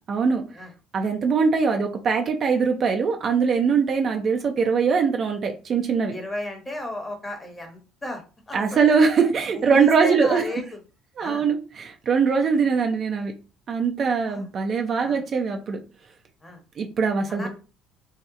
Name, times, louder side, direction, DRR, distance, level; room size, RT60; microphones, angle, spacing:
voice 1, 0.1-0.4 0.9-6.1 8.5-10.4 11.2-13.3 13.7-15.8 16.8-17.5, right 5 dB, 45° right, 4 dB, 0.6 m, -22 dB
voice 2, 6.1-8.8 9.5-10.8 11.2-11.5 12.6-12.7 14.3-14.5 15.0-15.2 16.4-16.6 17.3-17.5, left 1 dB, 15° left, 3 dB, 1.0 m, -35 dB
2.8 x 2.1 x 3.6 m, 0.33 s
supercardioid pair, 100°, 0 cm